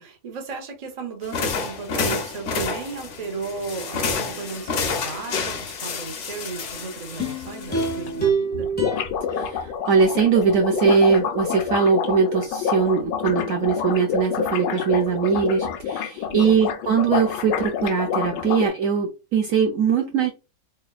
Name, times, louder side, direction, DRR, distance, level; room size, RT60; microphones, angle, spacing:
voice 1, 0.0-8.7 16.3-16.7, right 4 dB, 30° right, 0.7 m, -35 dB
sound 1, 1.2-8.2, left 5 dB, 55° left, 0.9 m, -29 dB
sound 2, 7.2-10.5 10.9-11.0, right 4 dB, 5° left, 0.9 m, -28 dB
sound 3, 7.4-7.5 7.7-7.8 8.1-8.2 8.4-18.7, left 7 dB, 85° left, 1.2 m, -27 dB
voice 2, 9.3-20.3, right 6 dB, 65° right, 0.9 m, -21 dB
3.5 x 3.5 x 2.3 m
omnidirectional pair, 1.8 m